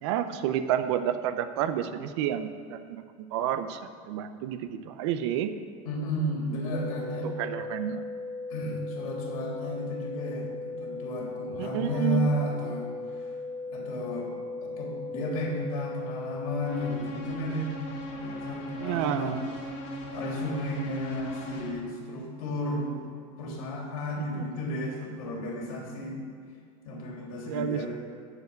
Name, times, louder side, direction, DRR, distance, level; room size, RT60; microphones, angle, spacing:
voice 1, 0.0-3.0 3.3-5.5 7.2-8.0 11.6-12.3 18.8-19.4 24.4-24.5 27.5-27.9, right 10 dB, 55° right, 10 dB, 0.6 m, -30 dB
voice 2, 5.8-7.3 8.5-12.9 13.2-13.3 13.7-14.3 14.6-17.7 18.1-19.4 20.1-23.0 23.4-26.2 26.8-27.9, left 1 dB, 85° left, -2 dB, 3.3 m, -33 dB
sound 1, 6.7-16.7, left 3 dB, 25° left, 2.1 m, -37 dB
sound 2, 16.7-21.7, equal, 60° left, 2.5 m, -38 dB
12.0 x 4.9 x 8.0 m, 2.1 s
supercardioid pair, 180°, 18 cm